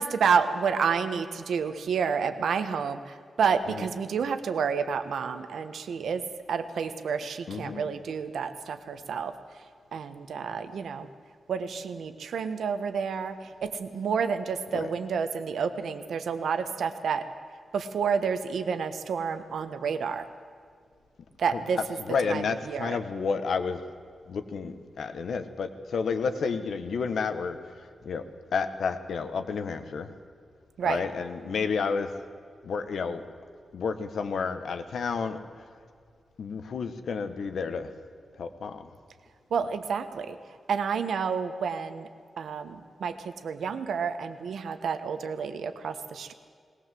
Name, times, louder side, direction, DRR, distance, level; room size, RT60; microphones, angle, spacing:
voice 1, 0.0-6.2 6.5-9.3 9.9-11.1 11.5-13.4 13.6-17.3 17.7-20.2 21.4-21.8 22.3-23.0 30.8-31.0 39.5-40.4 40.7-42.1 42.4-46.3, right 6 dB, 90° right, 9 dB, 1.3 m, -29 dB
voice 2, 7.5-7.9 14.7-14.9 21.5-21.6 22.0-23.8 24.3-27.6 28.0-28.2 28.5-30.1 30.8-32.1 32.6-33.2 33.7-35.4 36.4-37.9 38.4-38.9, left 5 dB, 70° left, 9 dB, 1.4 m, -30 dB
20.0 x 19.0 x 7.7 m, 2.1 s
wide cardioid pair, 160°, 0 cm